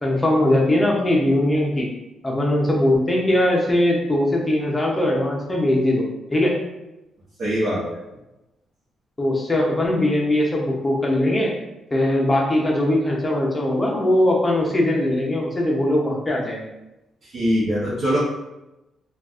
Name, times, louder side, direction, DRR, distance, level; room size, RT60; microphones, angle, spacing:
voice 1, 0.0-1.9 2.2-6.5 9.2-11.5 11.9-16.7, left 1 dB, 15° left, -2 dB, 0.7 m, -20 dB
voice 2, 7.4-8.0 17.3-18.2, equal, 55° right, -10 dB, 0.9 m, -22 dB
3.9 x 2.4 x 2.4 m, 0.95 s
cardioid pair, 145°, 0 cm